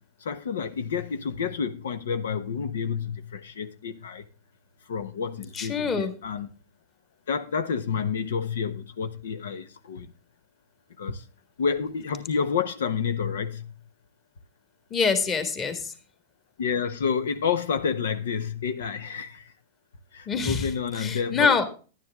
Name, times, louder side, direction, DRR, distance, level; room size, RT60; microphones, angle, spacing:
voice 1, 0.2-4.2 4.9-6.5 7.3-10.1 11.0-11.2 11.6-13.6 16.6-19.4 20.1-21.6, left 6 dB, 85° left, 1.0 m, -29 dB
voice 2, 5.5-6.1 14.9-15.9 20.3-21.6, left 5 dB, 25° left, 1.8 m, -25 dB
11.0 x 10.5 x 3.6 m
hypercardioid pair, 140°, 0 cm